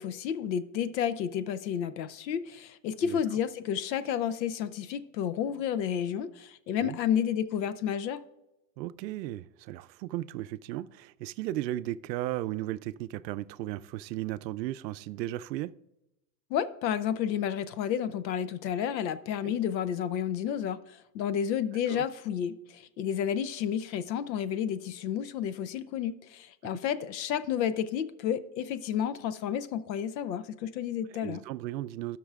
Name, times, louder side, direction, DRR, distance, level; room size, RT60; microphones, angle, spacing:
voice 1, 0.0-8.2 16.5-31.4, left 9 dB, 85° left, 0.8 m, -31 dB
voice 2, 8.8-15.7 19.4-19.5 21.9-22.0 31.1-32.2, right 15 dB, 85° right, 0.6 m, -35 dB
16.5 x 6.1 x 2.4 m
supercardioid pair, 150°, 49 cm